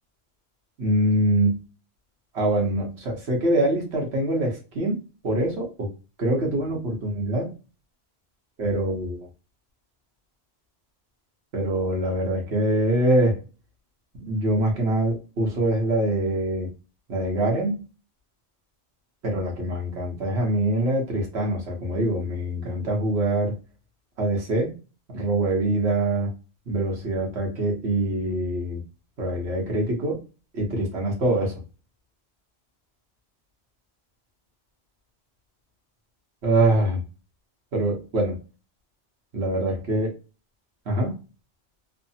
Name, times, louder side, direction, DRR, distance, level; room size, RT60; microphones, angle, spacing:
voice 1, 0.8-1.6 2.3-5.9 6.2-7.5 8.6-9.3 11.5-13.4 14.2-16.7 17.1-17.9 19.2-23.6 24.2-24.7 25.1-26.3 26.7-28.8 29.2-30.2 30.5-31.6 36.4-37.0 37.7-38.4 39.3-40.1 40.8-41.1, right 1 dB, 75° right, 0 dB, 1.4 m, -24 dB
3.3 x 2.1 x 2.6 m, 0.32 s
omnidirectional pair, 1.1 m